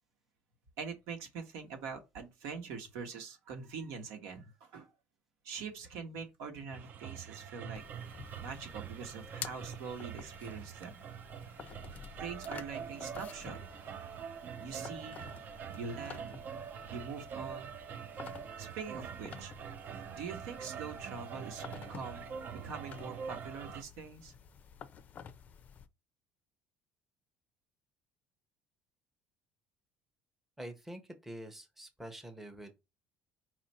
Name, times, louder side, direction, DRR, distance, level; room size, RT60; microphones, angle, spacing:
voice 1, 0.8-4.9 5.4-7.8 8.4-11.0 12.2-13.6 14.6-15.2 15.7-16.4 16.9-17.7 18.6-19.5 20.1-24.3, right 5 dB, 80° right, 1.3 m, -43 dB
sound 1, 6.7-23.8, right 7 dB, 40° right, 0.4 m, -45 dB
sound 2, 7.7-25.9, left 7 dB, 35° left, 0.5 m, -51 dB
voice 2, 30.6-32.8, right 1 dB, 5° right, 0.7 m, -46 dB
4.8 x 2.5 x 4.3 m
cardioid pair, 145°, 5 cm